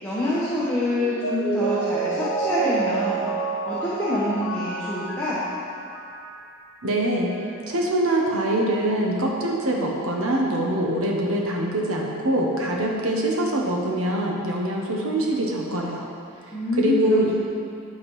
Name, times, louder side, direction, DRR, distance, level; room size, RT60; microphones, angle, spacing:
voice 1, 0.0-5.5 16.5-17.2, left 1 dB, 10° left, -10 dB, 1.1 m, -26 dB
Mallet percussion, 0.9-6.4 6.8-6.9, right 4 dB, 70° left, 1.1 m, -29 dB
voice 2, 6.8-7.3 7.7-16.0 16.8-17.3, right 1 dB, 80° right, -1 dB, 1.2 m, -24 dB
11.0 x 3.9 x 5.5 m, 2.5 s
head